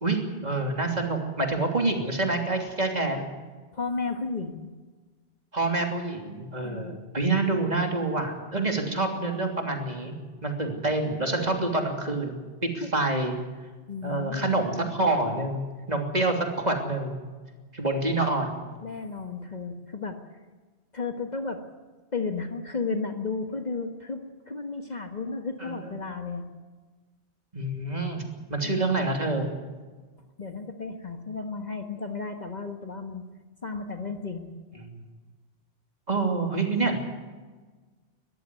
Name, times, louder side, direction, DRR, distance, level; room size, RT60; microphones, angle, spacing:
voice 1, 0.0-3.3 5.5-10.1 10.4-12.3 12.6-13.4 14.0-17.2 17.7-18.6 25.6-25.9 27.5-28.2 28.5-29.5 36.1-37.0, right 2 dB, 40° right, 2 dB, 3.2 m, -27 dB
voice 2, 3.7-4.7 6.6-7.0 11.4-11.7 12.8-12.9 13.9-14.5 18.1-18.2 18.8-20.2 20.9-21.6 22.1-26.5 28.6-29.0 30.4-33.2 33.6-34.5, left 4 dB, 40° left, 5 dB, 1.6 m, -33 dB
21.5 x 14.5 x 9.8 m, 1.4 s
omnidirectional pair, 1.1 m